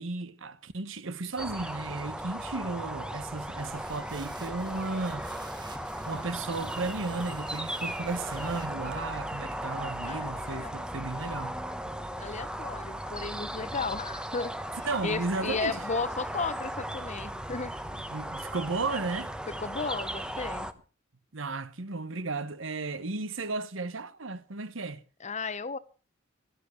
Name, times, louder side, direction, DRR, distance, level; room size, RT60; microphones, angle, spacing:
voice 1, 0.0-5.3 6.0-11.5 14.8-15.8 18.1-19.3 21.3-25.0, right 3 dB, 65° right, 1.1 m, -34 dB
sound 1, 1.4-20.7, equal, 5° right, 1.0 m, -37 dB
sound 2, 3.2-9.1, right 3 dB, 20° right, 1.6 m, -52 dB
voice 2, 10.0-10.8 12.2-17.7 19.5-20.7 25.2-25.8, left 4 dB, 35° left, 1.1 m, -34 dB
17.0 x 12.5 x 6.2 m
head